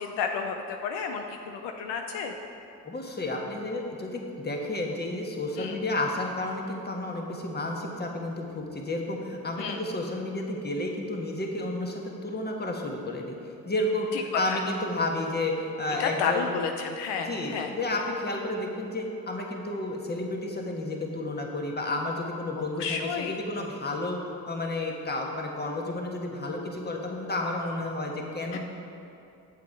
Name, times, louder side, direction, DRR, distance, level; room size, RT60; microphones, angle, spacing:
voice 1, 0.0-2.3 5.6-5.8 9.6-9.8 14.1-14.2 14.5-14.6 16.0-17.7 22.7-23.4 28.5-28.6, left 6 dB, 75° left, 4 dB, 0.7 m, -31 dB
voice 2, 2.8-13.4 13.6-16.5 17.2-22.8 23.1-24.2 24.5-28.6, left 2 dB, 20° left, 0 dB, 1.5 m, -31 dB
8.4 x 7.2 x 4.7 m, 2.7 s
hypercardioid pair, 55°, 43 cm